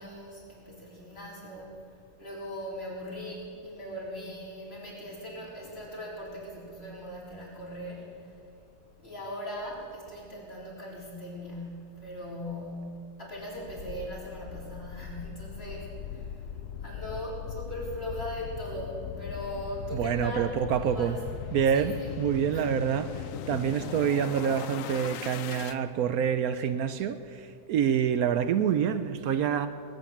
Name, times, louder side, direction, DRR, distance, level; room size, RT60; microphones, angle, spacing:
voice 1, 0.0-1.8 2.2-8.1 9.0-16.3 16.8-21.2 21.7-22.2 22.5-22.7, equal, 40° left, 4.3 m, -39 dB
sound 1, 13.5-25.8, left 9 dB, 65° left, 0.9 m, -39 dB
voice 2, 20.0-21.2 21.5-27.4 27.7-29.7, right 8 dB, 75° right, 1.1 m, -27 dB
19.5 x 9.3 x 7.3 m
omnidirectional pair, 1.6 m